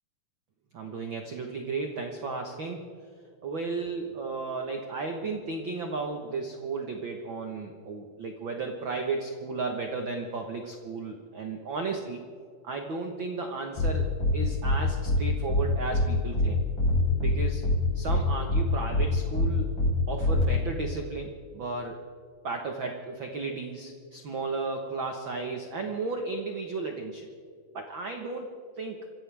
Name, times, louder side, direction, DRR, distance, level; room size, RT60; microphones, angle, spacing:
voice 1, 0.7-2.8 3.4-12.2 12.6-14.1 14.3-16.6 17.2-17.7 17.9-19.7 20.1-22.0 22.4-27.3 27.7-29.2, right 3 dB, 60° right, 3 dB, 1.3 m, -34 dB
sound 1, 13.8-13.9 14.2-14.3 14.6-14.8 15.1-15.2 15.5-15.6 15.9-16.0 16.3-16.5 16.8-17.3 17.6-17.8 18.1-18.2 18.5-18.6 18.9-19.0 19.3-19.5 19.8-19.9 20.2-20.4, left 1 dB, 85° left, 6.5 m, -24 dB
25.5 x 16.0 x 3.5 m, 2.1 s
omnidirectional pair, 3.8 m